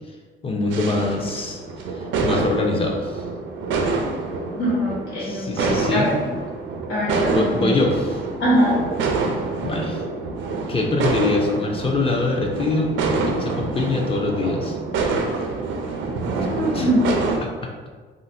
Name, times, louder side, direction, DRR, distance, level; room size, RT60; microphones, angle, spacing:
voice 1, 0.4-1.6 1.9-3.3 5.2-6.1 7.3-8.2 9.6-10.0 10.7-14.8 16.4-16.9 17.4-17.7, left 3 dB, 30° left, 1 dB, 0.6 m, -24 dB
sound 1, 0.7-17.4, right 3 dB, 80° right, 0.5 m, -26 dB
voice 2, 4.5-6.2 6.9-7.7 8.4-8.8 16.4-17.1, equal, 90° left, -7 dB, 1.4 m, -22 dB
3.7 x 2.1 x 2.6 m, 1.4 s
cardioid pair, 90°, 20 cm